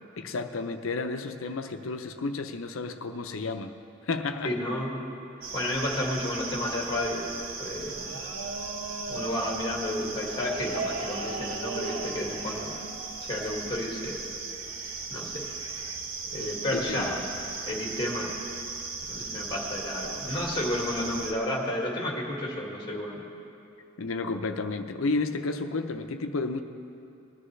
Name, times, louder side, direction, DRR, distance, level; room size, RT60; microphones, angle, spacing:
voice 1, 0.2-3.7 4.1-4.5 16.7-17.1 24.0-26.6, left 3 dB, 85° left, 7 dB, 0.7 m, -31 dB
voice 2, 4.4-5.1 5.5-7.3 7.6-8.2 9.1-12.8 13.2-14.3 15.1-15.5 16.3-17.3 17.6-18.4 19.1-23.2, left 1 dB, 20° left, -2 dB, 2.1 m, -31 dB
sound 1, 5.4-21.3, right 4 dB, 90° right, 1.1 m, -36 dB
20.5 x 11.5 x 3.3 m, 2.7 s
head